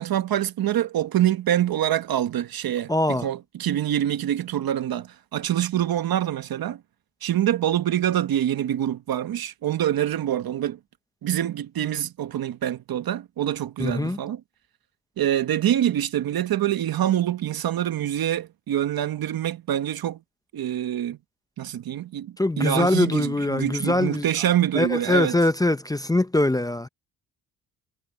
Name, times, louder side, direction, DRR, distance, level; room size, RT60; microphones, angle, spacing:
voice 1, 0.0-6.8 7.2-10.8 11.2-14.4 15.2-20.2 20.5-21.2 21.6-25.4, right 11 dB, 65° right, 1.3 m, -25 dB
voice 2, 2.9-3.3 13.8-14.2 22.4-24.3 24.7-26.9, left 2 dB, 10° left, 0.7 m, -22 dB
cardioid pair, 90°, 38 cm